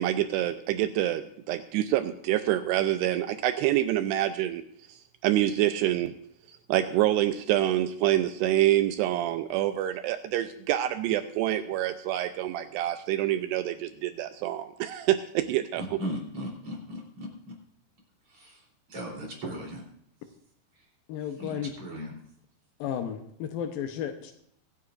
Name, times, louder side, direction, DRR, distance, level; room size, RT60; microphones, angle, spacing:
voice 1, 0.0-4.6 4.9-5.0 5.2-6.1 6.5-16.0, right 13 dB, 85° right, 9 dB, 2.4 m, -26 dB
voice 2, 15.8-17.5 18.3-18.6 18.9-19.8 21.4-22.2, equal, 35° right, -2 dB, 4.0 m, -37 dB
voice 3, 21.1-21.7 22.8-24.3, left 9 dB, 85° left, 5 dB, 2.0 m, -33 dB
24.0 x 9.6 x 2.5 m, 0.69 s
omnidirectional pair, 5.3 m